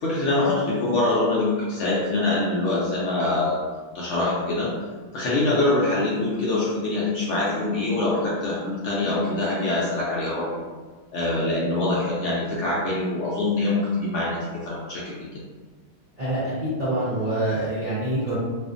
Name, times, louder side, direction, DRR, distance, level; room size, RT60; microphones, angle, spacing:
voice 1, 0.0-3.6 3.9-4.7 5.1-10.6 11.1-15.1, left 2 dB, 65° left, -6 dB, 0.8 m, -24 dB
voice 2, 16.2-18.3, right 1 dB, 50° right, -11 dB, 0.5 m, -26 dB
2.5 x 2.4 x 2.4 m, 1.4 s
omnidirectional pair, 1.6 m